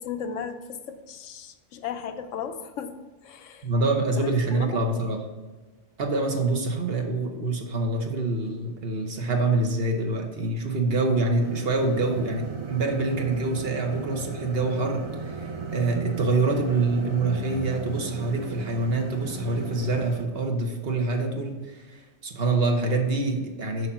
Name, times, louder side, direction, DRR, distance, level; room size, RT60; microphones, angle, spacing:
voice 1, 0.0-3.0 3.2-3.7 4.2-4.8, left 7 dB, 90° left, 8 dB, 1.0 m, -36 dB
voice 2, 3.6-5.3 6.0-23.9, right 2 dB, 55° right, 3 dB, 1.1 m, -26 dB
sound 1, 11.4-20.3, right 4 dB, 30° right, 0.7 m, -36 dB
6.4 x 5.6 x 5.5 m, 1.3 s
omnidirectional pair, 1.3 m